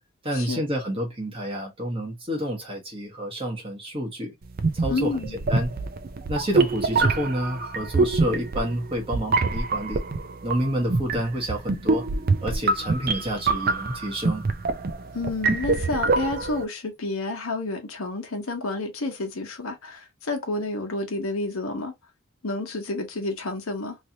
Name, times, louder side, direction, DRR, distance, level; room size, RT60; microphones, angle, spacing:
voice 1, 0.2-4.3 4.7-5.7 6.3-10.0 10.4-12.0 12.4-14.4, equal, 25° right, 1.2 m, -29 dB
sound 1, 4.5-16.6, right 3 dB, 45° right, 0.4 m, -25 dB
voice 2, 4.9-5.4 15.1-21.9 22.4-24.0, left 2 dB, 80° left, 1.0 m, -30 dB
3.2 x 2.7 x 2.7 m
head